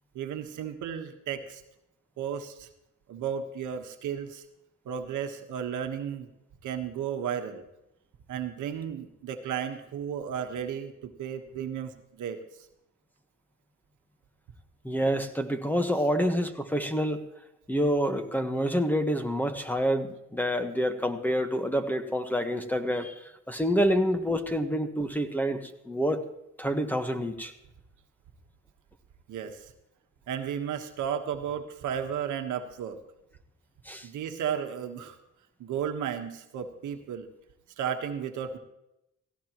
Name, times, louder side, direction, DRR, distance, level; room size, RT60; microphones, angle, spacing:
voice 1, 0.1-1.6 2.2-2.7 3.1-4.4 4.8-6.3 6.6-7.6 8.3-12.4 15.9-16.1 29.3-29.7 30.3-33.0 34.0-35.2 35.6-37.3 37.8-38.6, right 8 dB, 75° right, 6 dB, 1.4 m, -34 dB
voice 2, 14.8-17.2 17.7-23.2 23.5-26.2 26.6-27.5 33.8-34.1, equal, 5° left, 7 dB, 1.4 m, -27 dB
17.5 x 16.0 x 3.1 m, 0.87 s
cardioid pair, 90°, 30 cm